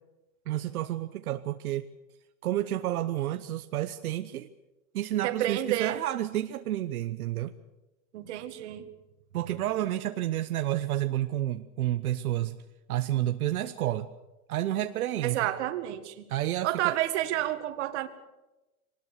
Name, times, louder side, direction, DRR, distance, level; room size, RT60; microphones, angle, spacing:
voice 1, 0.5-1.9 2.4-4.5 4.9-7.5 9.3-12.6 12.9-14.1 14.5-15.4 16.3-16.9, right 13 dB, 80° right, 9 dB, 1.1 m, -30 dB
voice 2, 5.2-6.0 8.1-8.8 15.2-16.3 16.6-18.1, right 14 dB, 50° right, 9 dB, 2.0 m, -30 dB
23.5 x 19.5 x 6.7 m, 1.0 s
supercardioid pair, 160°, 43 cm